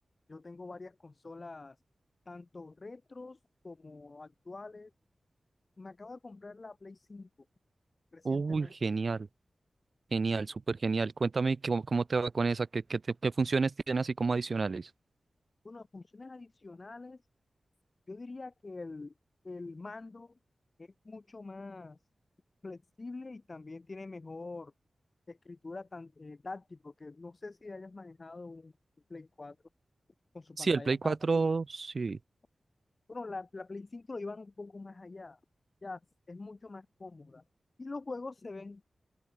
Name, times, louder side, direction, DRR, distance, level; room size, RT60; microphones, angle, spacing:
voice 1, 0.3-1.7 2.3-3.4 3.6-4.9 5.8-7.3 8.1-8.7 15.6-17.2 18.1-19.1 19.4-20.3 20.8-22.0 22.6-24.7 25.3-28.7 29.1-29.6 30.3-31.5 33.1-35.4 35.8-36.0 36.3-37.4 37.8-38.8, left 3 dB, 40° left, 1.6 m, -45 dB
voice 2, 8.2-9.3 10.1-14.9 30.6-32.2, right 4 dB, 55° right, 0.3 m, -30 dB
open air
wide cardioid pair, 85°, 0 cm